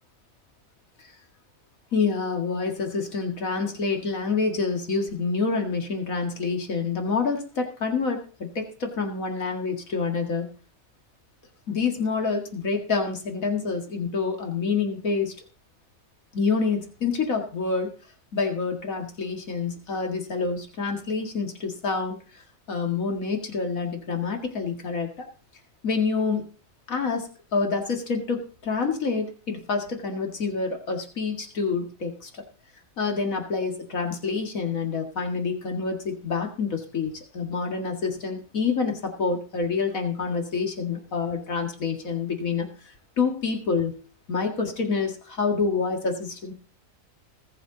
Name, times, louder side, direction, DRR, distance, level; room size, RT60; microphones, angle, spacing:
voice 1, 1.9-10.5 11.7-15.4 16.3-17.9 18.3-22.2 22.7-25.3 25.8-26.5 26.9-32.3 33.0-42.7 43.2-44.0 44.3-46.5, left 4 dB, 85° left, 3 dB, 2.4 m, -27 dB
21.0 x 7.1 x 3.9 m, 0.39 s
omnidirectional pair, 1.4 m